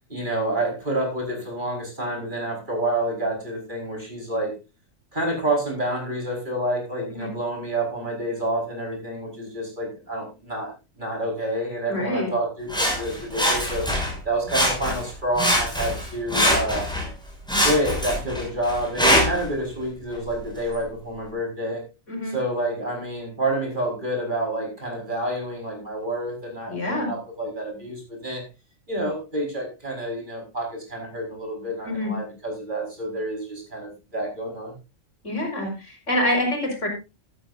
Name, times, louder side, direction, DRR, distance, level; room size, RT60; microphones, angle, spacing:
voice 1, 0.1-4.5 5.1-13.9 14.2-16.9 17.5-21.8 22.3-28.4 28.9-34.8, right 1 dB, 35° right, -1 dB, 5.1 m, -28 dB
voice 2, 11.9-12.3 22.1-22.3 26.7-27.1 31.9-32.1 35.2-36.9, left 1 dB, 65° left, 1 dB, 5.4 m, -26 dB
Sawing, 12.7-14.2 14.5-15.1 15.4-17.1 17.5-19.5 20.1-20.2, equal, 5° left, 6.2 m, -23 dB
14.5 x 13.0 x 2.6 m, 0.28 s
omnidirectional pair, 1.4 m